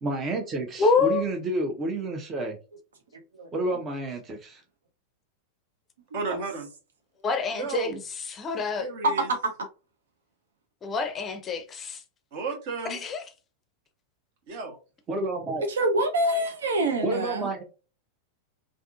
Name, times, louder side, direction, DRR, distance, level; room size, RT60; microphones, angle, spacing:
voice 1, 0.0-2.6 3.5-4.6 15.1-15.6 17.0-17.6, right 2 dB, 25° right, 0.6 m, -30 dB
voice 2, 0.8-1.2 7.2-8.9 10.8-12.0 12.9-13.2, left 4 dB, 25° left, 0.5 m, -26 dB
voice 3, 3.4-3.8 9.0-9.5 15.7-17.5, right 1 dB, 65° right, 0.6 m, -26 dB
voice 4, 6.1-6.7 7.5-8.0 8.7-9.3 12.3-13.0 14.5-14.8, right 4 dB, 50° right, 1.2 m, -33 dB
3.5 x 2.5 x 2.4 m
figure-of-eight pair, 90°, 0 cm